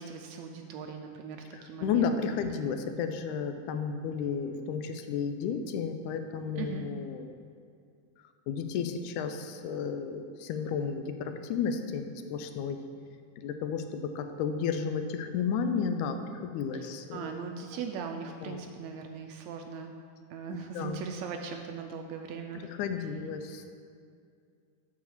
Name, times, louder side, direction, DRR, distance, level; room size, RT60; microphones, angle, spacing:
voice 1, 0.0-2.4 6.6-6.8 16.7-19.9 20.3-22.7, right 6 dB, 80° right, 4 dB, 1.7 m, -40 dB
voice 2, 1.5-7.4 8.5-12.8 13.4-17.5 18.4-18.6 20.7-21.0 22.7-23.8, left 6 dB, 85° left, 7 dB, 2.0 m, -33 dB
7.7 x 4.8 x 6.9 m, 2.3 s
omnidirectional pair, 3.5 m